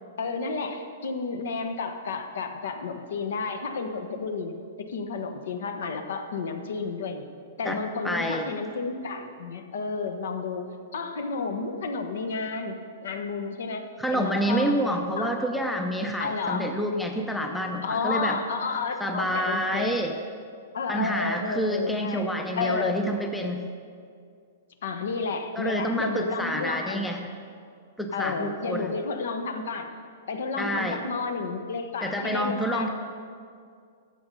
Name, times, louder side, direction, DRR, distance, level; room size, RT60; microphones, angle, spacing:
voice 1, 0.2-7.3 7.6-10.7 10.9-12.8 13.0-13.9 14.1-14.8 15.2-15.3 16.2-16.8 17.8-20.0 20.7-22.3 22.6-23.0 24.8-27.0 28.1-29.9 30.3-32.9, left 4 dB, 70° left, 7 dB, 1.1 m, -31 dB
voice 2, 8.0-8.5 14.0-18.4 19.0-20.2 20.9-23.7 25.6-27.3 28.0-28.9 30.6-31.0 32.0-32.9, equal, ahead, 3 dB, 0.5 m, -28 dB
12.5 x 7.8 x 5.4 m, 2.3 s
hypercardioid pair, 170°, 0 cm